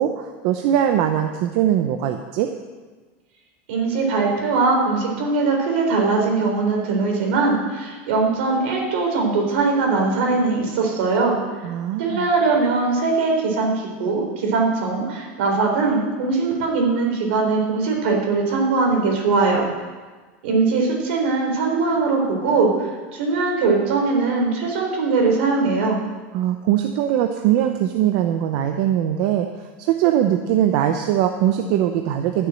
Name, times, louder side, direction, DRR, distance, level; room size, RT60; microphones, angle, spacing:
voice 1, 0.0-2.5 11.6-12.3 26.3-32.5, right 11 dB, 45° right, 6 dB, 0.7 m, -21 dB
voice 2, 3.7-11.4 12.0-19.6 20.4-22.7 23.1-26.0, right 4 dB, 70° right, 1 dB, 3.9 m, -21 dB
12.5 x 7.0 x 9.0 m, 1.3 s
supercardioid pair, 180°, 6 cm